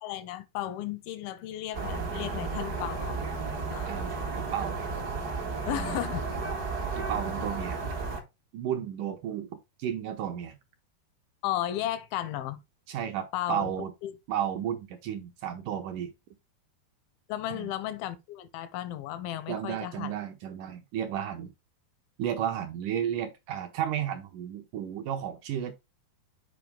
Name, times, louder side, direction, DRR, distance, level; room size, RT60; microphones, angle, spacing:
voice 1, 0.0-3.2 3.7-3.9 5.7-6.4 11.4-12.6 13.3-13.7 14.0-14.1 17.3-20.1, left 12 dB, 80° left, 2.3 m, -34 dB
sound 1, 1.7-8.2, right 4 dB, 55° right, 1.0 m, -33 dB
voice 2, 3.9-4.8 5.7-6.0 6.9-7.8 8.5-10.6 12.9-13.9 14.3-16.1 17.5-17.7 19.5-21.5 22.2-25.7, right 9 dB, 75° right, 1.9 m, -33 dB
7.9 x 4.9 x 3.4 m
omnidirectional pair, 4.6 m